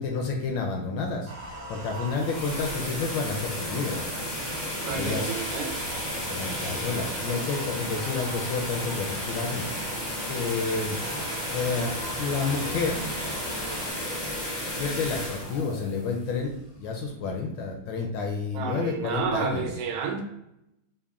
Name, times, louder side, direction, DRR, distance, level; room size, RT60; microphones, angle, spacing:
voice 1, 0.0-4.0 4.8-5.4 6.3-11.0 11.5-13.1 14.8-19.7, left 4 dB, 75° left, 2 dB, 1.1 m, -30 dB
sound 1, 1.3-13.9, right 2 dB, 50° right, 1.1 m, -42 dB
sound 2, 1.9-16.8, left 1 dB, 40° left, 0.5 m, -33 dB
sound 3, 4.0-9.4 11.0-13.5, right 3 dB, 70° right, 1.5 m, -49 dB
voice 2, 4.9-5.8 18.5-20.2, right 6 dB, 85° right, 3 dB, 1.5 m, -31 dB
4.0 x 2.0 x 3.5 m, 0.83 s
omnidirectional pair, 2.3 m